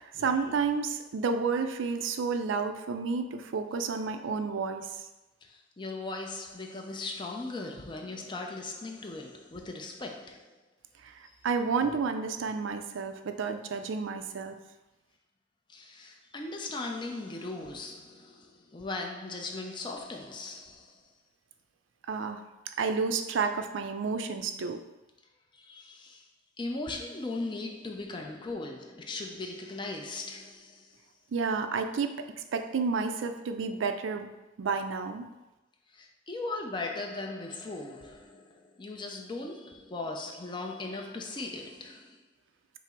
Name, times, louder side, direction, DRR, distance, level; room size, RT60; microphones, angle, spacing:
voice 1, 0.0-4.9 11.0-14.6 22.1-22.4 22.8-24.8 31.3-34.3 34.6-35.3, right 5 dB, 75° right, 0.4 m, -31 dB
voice 2, 5.4-10.5 15.7-20.9 25.5-26.2 26.6-30.9 35.9-42.2, left 2 dB, 25° left, 0.5 m, -38 dB
5.8 x 2.0 x 4.4 m
head